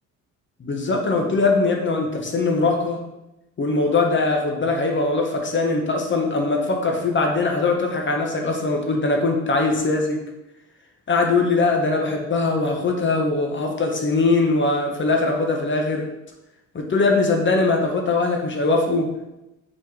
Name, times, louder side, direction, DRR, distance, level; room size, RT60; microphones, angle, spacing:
voice 1, 0.6-3.0 3.6-10.2 11.1-16.1 16.7-19.1, left 3 dB, 35° left, 2 dB, 1.1 m, -21 dB
4.5 x 4.4 x 4.8 m, 0.94 s
cardioid pair, 105°, 33 cm